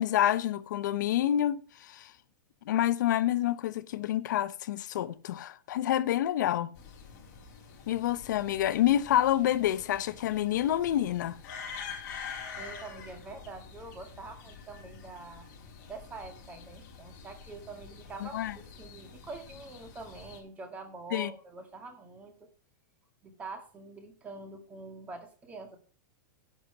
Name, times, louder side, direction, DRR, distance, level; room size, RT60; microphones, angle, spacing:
voice 1, 0.0-2.1 2.7-6.7 7.9-11.4 18.2-18.5 21.1-21.3, left 12 dB, 70° left, 0.7 m, -28 dB
sound 1, 6.7-20.4, left 5 dB, 45° left, 4.9 m, -46 dB
voice 2, 12.5-15.5 15.9-22.5 23.2-25.8, right 3 dB, 15° right, 1.9 m, -45 dB
11.0 x 6.0 x 6.6 m
supercardioid pair, 165°, 10 cm